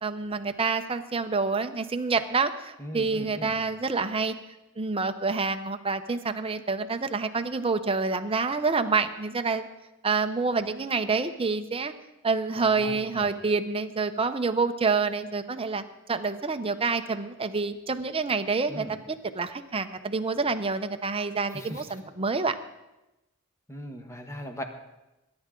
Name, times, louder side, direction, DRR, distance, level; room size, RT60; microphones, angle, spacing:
voice 1, 0.0-4.3 4.8-9.7 10.0-11.9 12.2-15.8 16.1-22.6, right 4 dB, 25° right, 9 dB, 0.7 m, -27 dB
voice 2, 2.8-3.6 12.6-13.3 18.7-18.9 21.5-21.9 23.7-24.6, equal, 15° left, 5 dB, 1.3 m, -39 dB
21.0 x 10.5 x 3.8 m, 0.99 s
head